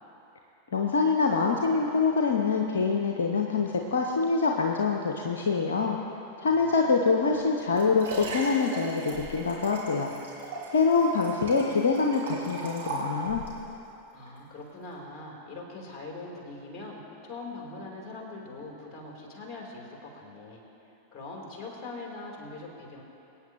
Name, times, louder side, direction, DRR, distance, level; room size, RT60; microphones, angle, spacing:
voice 1, 0.7-6.0 6.4-10.1 10.7-13.4, left 4 dB, 65° left, 2 dB, 0.8 m, -25 dB
voice 2, 6.4-7.2 14.1-20.6 21.1-23.0, left 2 dB, 30° left, -1 dB, 3.3 m, -42 dB
Liquid, 7.4-13.6 14.3-14.4, right 3 dB, 70° right, 3.2 m, -38 dB
25.0 x 9.1 x 3.0 m, 2.9 s
figure-of-eight pair, 90°, 0 cm